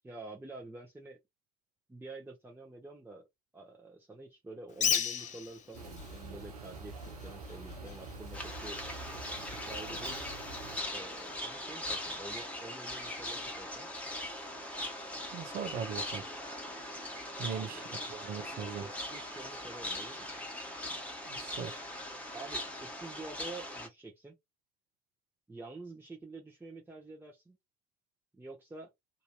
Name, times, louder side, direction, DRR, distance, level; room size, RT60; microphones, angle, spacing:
voice 1, 0.0-1.2 1.9-3.3 3.5-10.3 10.9-13.9 17.5-18.1 18.5-20.3 22.3-24.4 25.5-27.6 28.4-28.9, right 2 dB, 10° right, 1.0 m, -48 dB
Bird, 4.7-11.4, left 7 dB, 40° left, 0.7 m, -39 dB
sound 1, 5.7-10.8, right 3 dB, 85° right, 0.5 m, -46 dB
sound 2, 8.3-23.9, left 1 dB, 5° left, 1.3 m, -40 dB
voice 2, 15.3-16.3 17.4-17.8 18.1-18.9 21.2-21.8, right 7 dB, 50° right, 0.8 m, -39 dB
2.7 x 2.7 x 2.3 m
figure-of-eight pair, 55°, 19 cm